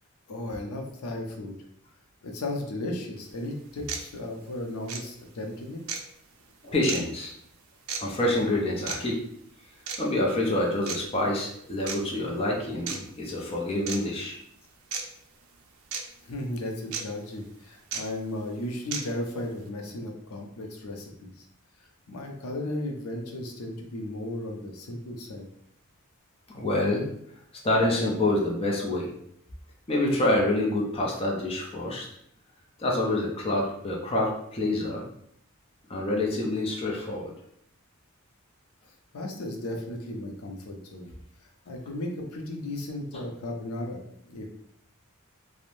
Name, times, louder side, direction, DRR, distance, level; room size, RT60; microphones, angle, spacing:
voice 1, 0.3-1.5 2.2-5.8 16.2-21.5 21.8-25.5 39.1-41.1 41.7-44.5, left 1 dB, 90° left, 2 dB, 0.5 m, -35 dB
sound 1, 3.2-3.3 3.9-4.0 4.9-5.0 5.9-6.0 6.9-7.0 7.9-8.0 8.9-9.0 9.9-10.0 10.9-11.0 11.9-12.0 12.9-13.0 13.9-14.0 14.9-15.0 15.9-16.0 16.9-17.0 17.9-18.0 18.9-19.0, right 6 dB, 70° right, 0.4 m, -32 dB
voice 2, 6.6-7.3 8.0-9.2 10.0-14.4 26.5-27.1 27.6-29.1 29.9-32.1 32.8-35.0 35.9-37.3, left 1 dB, 25° left, -2 dB, 0.5 m, -27 dB
2.5 x 2.0 x 3.0 m, 0.73 s
head